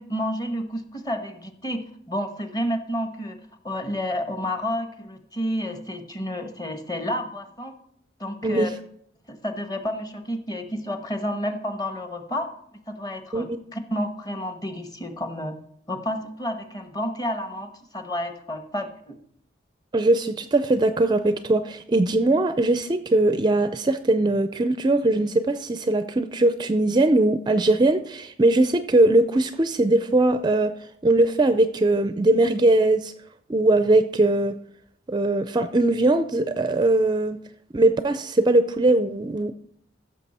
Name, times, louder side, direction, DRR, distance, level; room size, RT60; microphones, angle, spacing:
voice 1, 0.0-3.4 3.6-7.7 8.2-8.7 9.3-12.5 12.9-15.5 15.9-19.2, equal, 20° left, 7 dB, 1.1 m, -30 dB
voice 2, 19.9-30.7 31.0-33.1 33.5-34.6 35.1-37.4 37.7-39.5, right 2 dB, 25° right, 10 dB, 0.4 m, -20 dB
14.5 x 6.5 x 4.2 m, 0.70 s
head